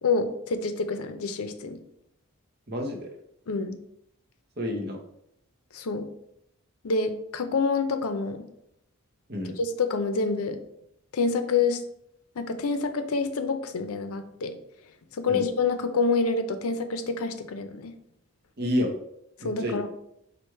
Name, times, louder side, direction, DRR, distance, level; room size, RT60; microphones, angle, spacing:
voice 1, 0.0-1.8 3.5-3.8 5.7-6.1 6.8-8.5 9.6-10.6 11.1-11.8 12.4-14.5 15.1-17.9 19.4-19.9, left 4 dB, 85° left, 9 dB, 0.5 m, -27 dB
voice 2, 2.7-3.1 4.6-5.0 9.3-9.5 15.3-15.4 18.6-18.9 19.4-19.8, left 1 dB, 45° right, 2 dB, 0.9 m, -29 dB
4.6 x 2.5 x 4.5 m, 0.75 s
head